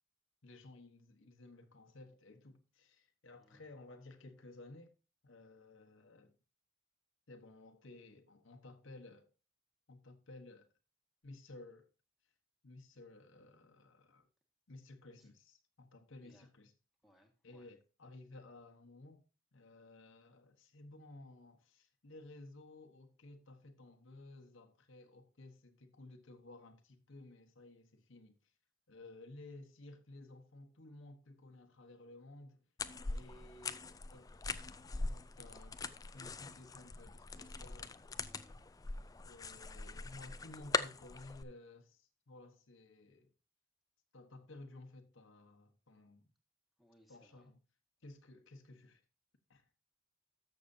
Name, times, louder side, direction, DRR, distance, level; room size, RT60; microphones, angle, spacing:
voice 1, 0.4-4.9 5.2-6.3 7.3-9.3 9.9-10.7 11.2-11.9 12.6-14.3 14.7-16.7 17.4-19.2 19.5-28.3 28.9-32.6 33.1-35.8 36.1-38.3 39.2-43.3 44.1-46.3 47.1-47.6 48.0-49.0 49.5-49.6, left 2 dB, 65° left, 1.2 m, -55 dB
voice 2, 3.4-3.7 15.2-15.3 16.2-16.5 17.0-17.7 38.3-38.6 46.8-47.5, equal, ahead, 1.6 m, -67 dB
sound 1, 32.8-41.4, left 3 dB, 15° left, 0.4 m, -42 dB
13.5 x 6.7 x 2.7 m
head